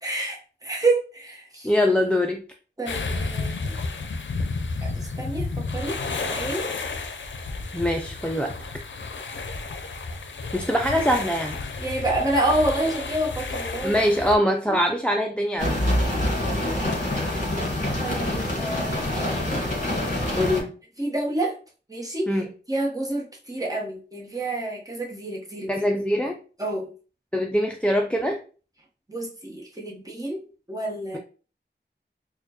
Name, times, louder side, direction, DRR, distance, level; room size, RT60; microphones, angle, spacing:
voice 1, 0.0-1.7 2.8-3.7 4.8-6.7 11.8-13.9 14.7-14.8 18.0-20.5 21.0-21.6 21.9-22.4 22.7-25.7 26.6-26.9 29.1-30.4 30.7-31.2, right 2 dB, 20° right, -2 dB, 1.0 m, -29 dB
voice 2, 1.6-2.4 7.7-8.6 10.5-11.6 13.8-15.9 20.4-20.7 22.3-22.5 25.7-26.4 27.3-28.4, equal, 5° left, 3 dB, 0.4 m, -23 dB
sound 1, 2.9-14.4, left 3 dB, 85° left, 0.5 m, -31 dB
sound 2, 15.6-20.6, left 1 dB, 45° left, 1.5 m, -26 dB
4.3 x 2.3 x 2.8 m, 0.38 s
wide cardioid pair, 55°, 19 cm